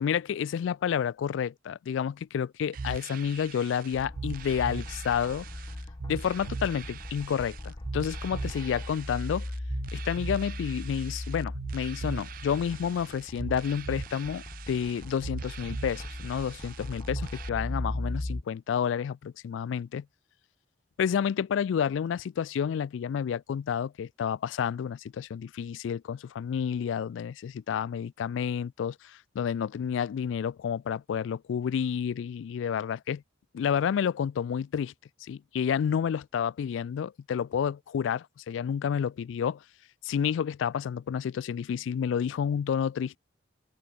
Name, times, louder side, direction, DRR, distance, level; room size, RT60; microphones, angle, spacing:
voice 1, 0.0-5.5 6.1-9.4 9.9-20.1 21.0-33.2 33.5-34.9 35.2-39.6 40.0-43.2, left 8 dB, 80° left, 0.3 m, -30 dB
sound 1, 2.7-17.5, right 4 dB, 45° right, 0.4 m, -40 dB
sound 2, 3.9-18.4, left 1 dB, 20° left, 0.6 m, -38 dB
open air
head